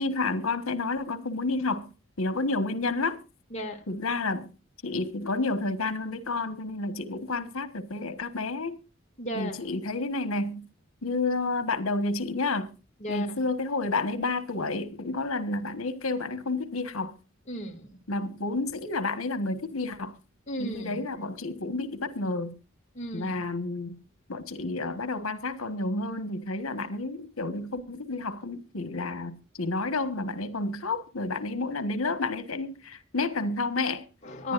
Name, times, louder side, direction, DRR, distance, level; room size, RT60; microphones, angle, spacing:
voice 1, 0.0-1.9 2.2-3.2 3.9-4.5 4.8-8.8 9.3-10.7 11.0-12.8 13.1-17.2 18.1-20.2 20.6-22.6 23.1-24.0 24.3-34.1 34.4-34.5, left 3 dB, 85° left, 1.5 m, -30 dB
voice 2, 3.5-3.8 9.2-9.7 13.0-13.4 17.5-18.0 20.5-21.1 22.9-23.4 34.2-34.5, left 1 dB, 30° left, 2.4 m, -35 dB
25.0 x 10.5 x 2.6 m
head